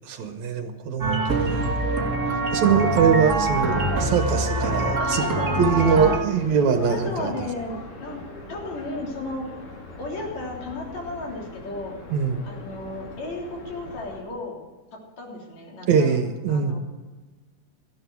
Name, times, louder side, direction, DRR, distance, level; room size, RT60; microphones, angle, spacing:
voice 1, 0.0-1.7 2.3-5.3 5.6-7.3 12.1-12.4 15.9-16.8, right 6 dB, 65° right, 6 dB, 2.3 m, -22 dB
sound 1, 1.0-6.2, right 2 dB, 35° right, 1.3 m, -24 dB
sound 2, 2.4-14.2, left 2 dB, 85° left, 4.5 m, -41 dB
voice 2, 5.0-6.2 6.7-8.2 8.5-9.5 10.0-12.0 12.4-14.6 15.2-16.2 16.5-16.8, left 2 dB, 60° left, -1 dB, 4.5 m, -34 dB
18.5 x 13.5 x 4.7 m, 1.3 s
omnidirectional pair, 3.7 m